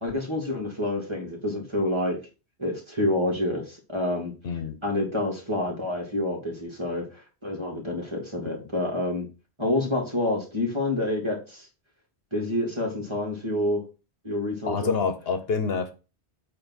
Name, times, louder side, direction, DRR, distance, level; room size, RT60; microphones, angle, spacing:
voice 1, 0.0-2.2 2.6-4.3 4.8-9.3 9.6-11.7 12.3-13.8 14.2-15.0, left 1 dB, 25° right, 2.5 m, -28 dB
voice 2, 4.4-4.8 14.7-15.9, left 5 dB, 65° left, 1.1 m, -27 dB
8.6 x 3.4 x 6.3 m
omnidirectional pair, 1.1 m